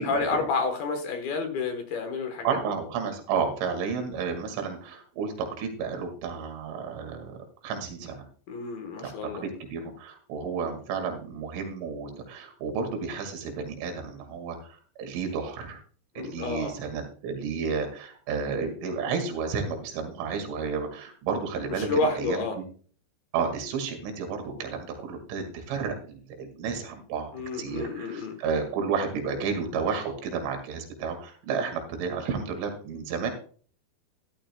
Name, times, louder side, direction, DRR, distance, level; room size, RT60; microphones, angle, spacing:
voice 1, 0.0-2.6 8.5-9.4 16.2-16.8 21.8-22.6 27.3-28.4, left 4 dB, 65° left, 5 dB, 2.7 m, -30 dB
voice 2, 2.4-7.4 7.6-8.2 9.0-15.8 16.2-22.6 23.3-33.3, right 5 dB, 85° right, 5 dB, 4.6 m, -32 dB
14.0 x 12.5 x 2.3 m, 0.43 s
omnidirectional pair, 5.5 m